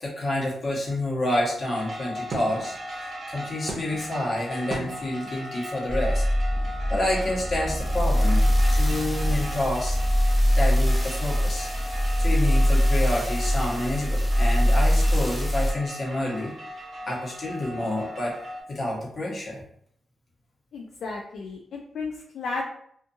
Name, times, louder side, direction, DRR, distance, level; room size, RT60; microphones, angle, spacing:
voice 1, 0.0-6.2 6.9-10.0 10.6-16.5 17.1-18.4 18.7-19.6, left 1 dB, 55° left, -3 dB, 1.1 m, -29 dB
sound 1, 1.7-18.6, equal, 55° right, 0.7 m, -38 dB
sound 2, 5.9-15.7, equal, 5° left, 0.7 m, -22 dB
voice 2, 20.7-22.6, left 4 dB, 75° left, 0 dB, 0.3 m, -34 dB
2.5 x 2.5 x 2.6 m, 0.66 s
cardioid pair, 60°, 0 cm